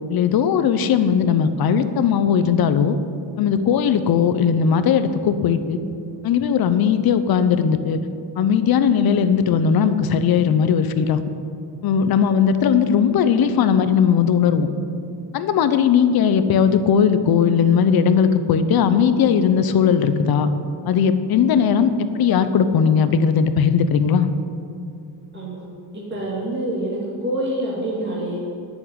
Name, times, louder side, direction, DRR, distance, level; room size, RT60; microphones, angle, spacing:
voice 1, 0.1-3.0 3.4-5.8 6.2-8.0 8.4-11.2 11.8-14.7 15.3-20.5 20.9-21.9 22.2-24.3, left 7 dB, 50° left, 11 dB, 0.8 m, -18 dB
voice 2, 25.3-25.7 25.9-28.4, right 1 dB, 25° right, -6 dB, 2.5 m, -26 dB
9.6 x 7.3 x 9.3 m, 2.5 s
cardioid pair, 130°, 47 cm